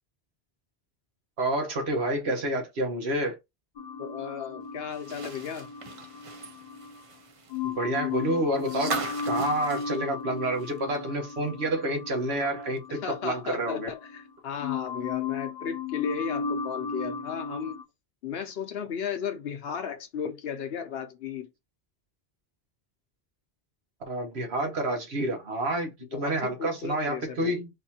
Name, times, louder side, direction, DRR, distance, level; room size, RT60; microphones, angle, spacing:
voice 1, 1.4-3.4 7.6-13.9 24.1-27.7, right 1 dB, 85° right, 1.4 m, -29 dB
voice 2, 3.8-5.7 12.9-17.8 18.2-21.5 26.1-27.5, left 7 dB, 70° left, 1.0 m, -35 dB
sound 1, 3.8-7.0 7.5-14.3 14.6-17.8, left 5 dB, 50° left, 0.8 m, -35 dB
sound 2, 4.9-11.0 11.3-11.4 12.8-12.9, right 4 dB, 40° right, 0.5 m, -39 dB
4.1 x 2.7 x 2.8 m
omnidirectional pair, 1.1 m